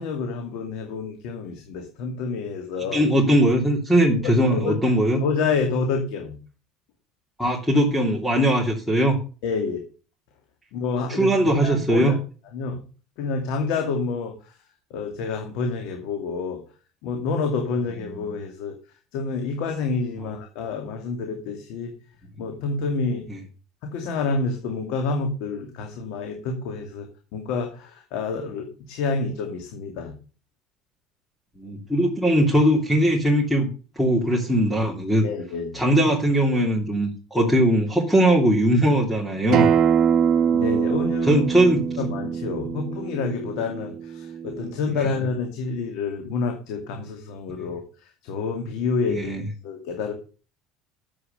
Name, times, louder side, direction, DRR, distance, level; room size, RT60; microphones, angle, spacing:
voice 1, 0.0-3.0 4.1-4.9 5.2-6.4 9.4-9.8 10.7-12.2 12.5-12.8 13.2-14.6 14.9-16.6 17.0-18.7 19.1-21.9 22.4-23.3 23.8-30.1 35.2-35.8 40.5-41.4 42.0-49.3 49.6-50.1, left 4 dB, 75° left, 4 dB, 2.4 m, -28 dB
voice 2, 2.9-5.2 7.4-9.2 11.1-12.1 31.6-33.7 34.0-35.2 35.7-39.7 41.3-41.8 45.0-45.1 49.1-49.4, right 1 dB, 5° left, -1 dB, 2.8 m, -20 dB
Acoustic guitar, 39.5-44.7, right 7 dB, 45° right, 1.6 m, -23 dB
9.8 x 8.0 x 6.7 m, 0.36 s
supercardioid pair, 110°, 0 cm